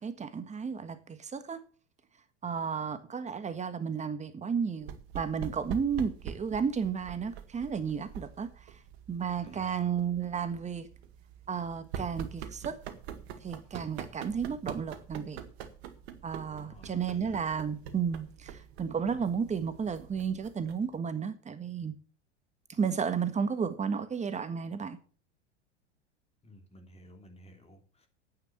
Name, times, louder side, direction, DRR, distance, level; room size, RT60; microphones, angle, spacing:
voice 1, 0.0-1.6 2.4-8.5 9.1-10.9 11.5-12.8 13.4-15.4 16.2-21.9 22.8-25.0, right 6 dB, 20° right, 1.6 m, -33 dB
sound 1, 4.8-21.0, right 8 dB, 60° right, 2.0 m, -45 dB
voice 2, 9.4-9.8 16.5-17.4 26.4-28.1, equal, 15° left, 3.1 m, -53 dB
9.5 x 9.4 x 7.3 m
hypercardioid pair, 90°, 35 cm